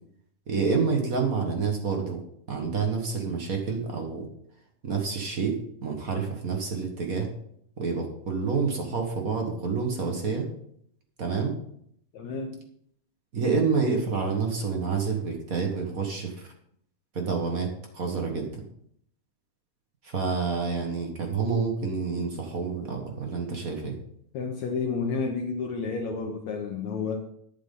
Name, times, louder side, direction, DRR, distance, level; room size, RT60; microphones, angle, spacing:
voice 1, 0.5-2.2 2.5-4.3 4.8-5.5 5.8-7.3 7.8-10.5 11.2-11.5 13.3-16.3 17.1-18.5 20.0-24.0, right 5 dB, 50° right, 2 dB, 1.0 m, -28 dB
voice 2, 12.1-12.6 24.3-27.3, left 4 dB, 70° left, 1 dB, 2.1 m, -30 dB
11.0 x 9.5 x 3.8 m, 0.69 s
omnidirectional pair, 3.7 m